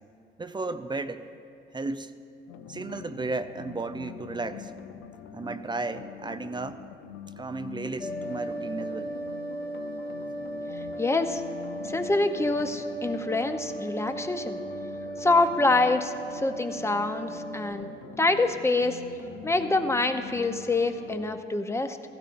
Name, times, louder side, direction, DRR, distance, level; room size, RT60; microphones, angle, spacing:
voice 1, 0.4-1.3 1.7-2.1 2.7-4.7 5.3-6.8 7.4-9.1, right 3 dB, 20° right, 10 dB, 0.5 m, -34 dB
sound 1, 2.5-21.4, left 8 dB, 85° left, 0.6 m, -45 dB
sound 2, 8.0-17.7, right 1 dB, 50° left, 1.5 m, -36 dB
voice 2, 10.8-11.4 11.8-14.6 15.1-17.9 18.2-19.0 19.4-22.0, left 2 dB, 15° left, 7 dB, 0.7 m, -26 dB
16.0 x 15.0 x 2.6 m, 2.4 s
cardioid pair, 90°, 20 cm